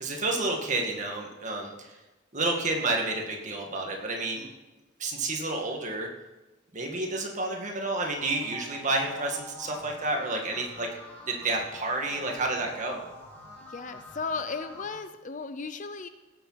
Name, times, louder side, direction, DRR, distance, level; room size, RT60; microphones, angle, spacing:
voice 1, 0.0-2.0 2.3-4.5 5.0-6.1 6.7-10.9 11.3-13.0, right 2 dB, 35° right, 1 dB, 2.0 m, -30 dB
sound 1, 8.1-15.0, left 1 dB, 10° left, 2.5 m, -47 dB
voice 2, 13.7-16.1, left 4 dB, 40° left, 10 dB, 0.6 m, -35 dB
17.0 x 7.6 x 5.8 m, 1.1 s
head